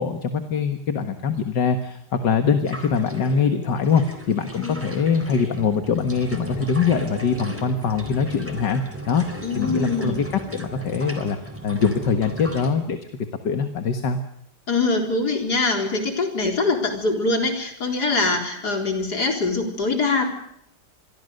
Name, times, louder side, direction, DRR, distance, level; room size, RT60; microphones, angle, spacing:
voice 1, 0.0-9.2 9.6-11.4 11.6-14.2, left 5 dB, 80° left, 7 dB, 2.2 m, -23 dB
sound 1, 2.7-12.7, right 1 dB, 5° right, 3.5 m, -36 dB
voice 2, 9.4-10.3 14.7-20.3, left 3 dB, 65° left, 3 dB, 4.7 m, -23 dB
27.0 x 22.5 x 6.6 m, 0.76 s
omnidirectional pair, 1.8 m